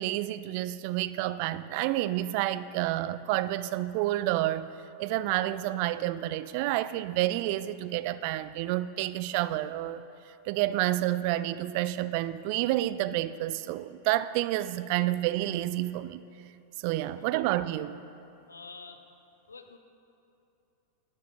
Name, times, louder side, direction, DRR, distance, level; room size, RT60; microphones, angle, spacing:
voice 1, 0.0-4.7 5.0-10.0 10.5-16.2 16.8-17.9, right 15 dB, 45° right, 15 dB, 0.3 m, -29 dB
voice 2, 18.5-19.1 19.5-19.8, left 4 dB, 75° left, 7 dB, 0.8 m, -48 dB
11.0 x 10.5 x 3.7 m, 2.8 s
figure-of-eight pair, 90°, 0 cm